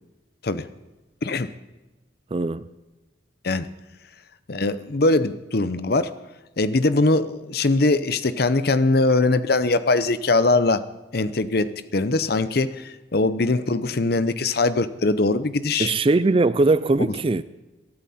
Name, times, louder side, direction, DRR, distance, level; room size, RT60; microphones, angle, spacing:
voice 1, 2.3-2.6 15.8-17.4, right 3 dB, 30° right, 0.4 m, -20 dB
voice 2, 4.5-6.1 6.6-10.9 11.1-15.9 17.0-17.1, left 2 dB, 55° left, 0.7 m, -21 dB
22.5 x 13.0 x 4.3 m
head